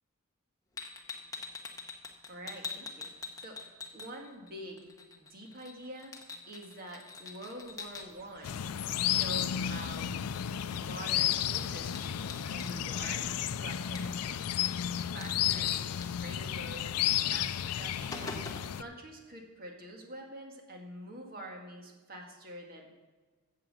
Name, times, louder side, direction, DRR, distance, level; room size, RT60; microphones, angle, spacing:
sound 1, 0.8-4.5 4.8-8.1 10.2-10.3 10.6-12.8 14.0-14.3 14.6-14.7 15.0-16.1 17.2-17.3 17.7-18.8, left 4 dB, 15° left, 0.9 m, -44 dB
voice 1, 2.3-6.2 6.5-8.6 9.0-10.1 10.6-14.4 15.1-23.0, right 1 dB, 40° right, 1 dB, 1.8 m, -46 dB
sound 2, 7.6-14.4, equal, 10° right, 1.2 m, -60 dB
sound 3, 8.4-18.8, left 10 dB, 90° left, 0.4 m, -32 dB
8.8 x 7.5 x 7.6 m, 1.3 s
head